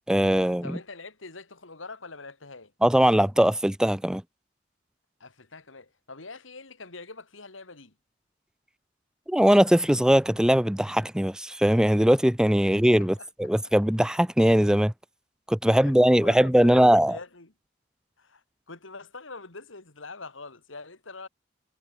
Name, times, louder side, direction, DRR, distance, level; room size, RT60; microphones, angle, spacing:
voice 1, 0.1-0.8 2.8-4.2 9.3-14.9 15.5-17.2, equal, 5° right, 0.5 m, -20 dB
voice 2, 0.6-2.7 5.2-7.9 13.0-13.7 15.8-17.5 18.2-21.3, left 3 dB, 85° left, 2.9 m, -44 dB
head